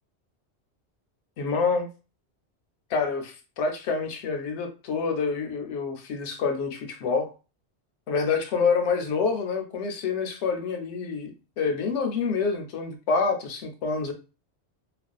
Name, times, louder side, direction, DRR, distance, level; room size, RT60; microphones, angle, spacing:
voice 1, 1.4-1.9 2.9-7.3 8.1-11.3 11.6-14.1, left 5 dB, 80° left, 6 dB, 0.9 m, -27 dB
2.5 x 2.2 x 2.3 m, 0.33 s
omnidirectional pair, 1.2 m